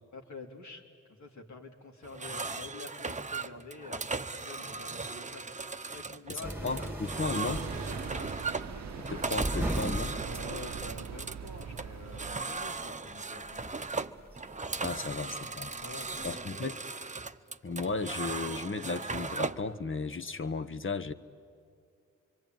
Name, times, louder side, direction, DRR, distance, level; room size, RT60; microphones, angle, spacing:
voice 1, 0.1-0.8 1.1-6.9 8.1-8.3 10.2-14.1 15.1-15.5 15.8-16.7, left 3 dB, 65° left, 2 dB, 3.2 m, -48 dB
sound 1, 2.0-19.7, right 4 dB, 25° right, 0.9 m, -38 dB
voice 2, 6.3-7.6 9.1-10.2 14.8-15.8 16.2-16.8 17.6-21.1, left 4 dB, 40° left, 10 dB, 1.1 m, -35 dB
sound 2, 6.4-16.3, right 1 dB, 5° right, 2.2 m, -39 dB
sound 3, 7.4-12.4, right 8 dB, 60° right, 0.8 m, -42 dB
25.5 x 23.5 x 9.2 m, 2.4 s
cardioid pair, 45°, 31 cm